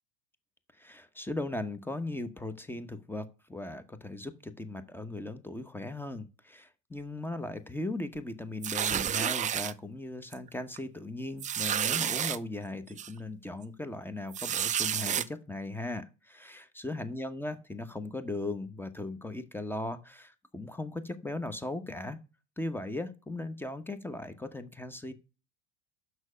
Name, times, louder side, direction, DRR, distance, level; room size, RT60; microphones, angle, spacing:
voice 1, 0.8-22.2 22.6-25.1, left 2 dB, 5° left, 11 dB, 0.9 m, -38 dB
sound 1, 8.6-9.7 10.3-10.5 10.8-10.9 11.4-12.4 13.0-13.1 14.3-15.3, right 9 dB, 20° right, 0.4 m, -30 dB
6.3 x 5.6 x 5.0 m, 0.31 s
hypercardioid pair, 90°, 36 cm